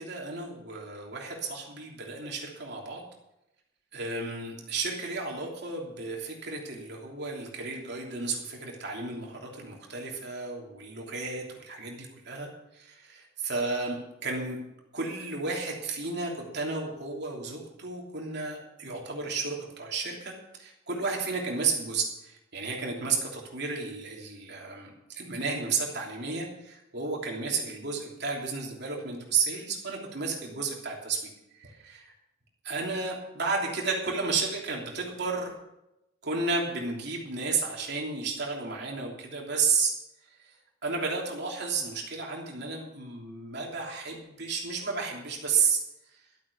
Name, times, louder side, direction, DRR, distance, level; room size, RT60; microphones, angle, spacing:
voice 1, 0.0-3.0 3.9-14.6 14.9-32.1 32.6-35.5 36.2-39.9 40.4-40.6 40.8-45.8 46.1-46.2, right 4 dB, 60° right, -1 dB, 3.2 m, -32 dB
12.5 x 8.5 x 7.1 m, 0.89 s
head